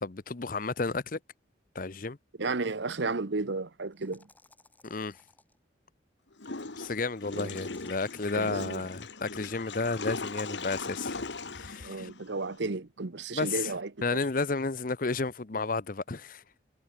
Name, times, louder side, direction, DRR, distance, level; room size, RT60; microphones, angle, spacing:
voice 1, 0.0-1.2 1.7-2.2 4.8-5.2 6.8-11.2 11.5-12.1 13.3-13.7 14.0-16.4, left 3 dB, 45° left, 0.8 m, -32 dB
voice 2, 2.4-4.3 7.3-7.6 8.3-8.8 11.8-13.9, right 3 dB, 70° right, 1.0 m, -33 dB
sound 1, 2.6-2.7 3.9-5.6 7.3-8.5, left 2 dB, 10° left, 5.2 m, -61 dB
Water / Toilet flush, 6.4-12.6, left 3 dB, 70° left, 1.7 m, -39 dB
head